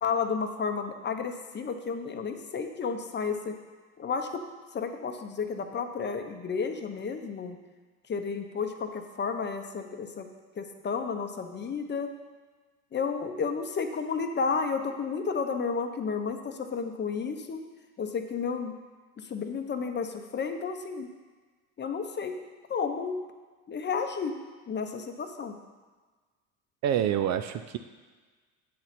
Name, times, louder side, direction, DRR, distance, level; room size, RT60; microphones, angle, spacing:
voice 1, 0.0-3.6 4.0-4.4 4.7-7.6 8.1-10.3 10.6-12.1 12.9-17.6 18.0-18.7 19.2-21.1 21.8-22.4 22.7-23.3 23.7-24.4 24.7-25.6, left 5 dB, 25° left, 6 dB, 0.8 m, -32 dB
voice 2, 26.8-27.8, right 10 dB, 45° right, 9 dB, 0.5 m, -27 dB
8.6 x 4.0 x 5.8 m, 1.4 s
hypercardioid pair, 80°, 40 cm